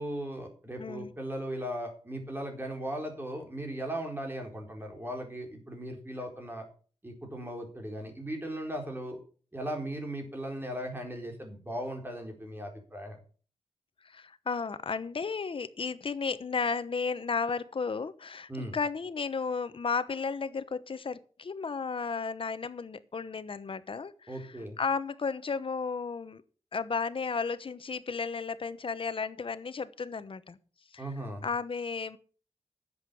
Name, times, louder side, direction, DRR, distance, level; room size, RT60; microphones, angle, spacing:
voice 1, 0.0-6.6 7.0-9.2 9.5-13.2 18.5-18.8 24.3-24.8 31.0-31.5, right 1 dB, 20° right, 3 dB, 4.3 m, -37 dB
voice 2, 0.8-1.1 14.0-26.4 26.7-30.6 30.9-31.1 31.4-32.2, left 5 dB, 55° left, 14 dB, 1.0 m, -34 dB
10.5 x 8.0 x 7.1 m, 0.40 s
wide cardioid pair, 95°, 11 cm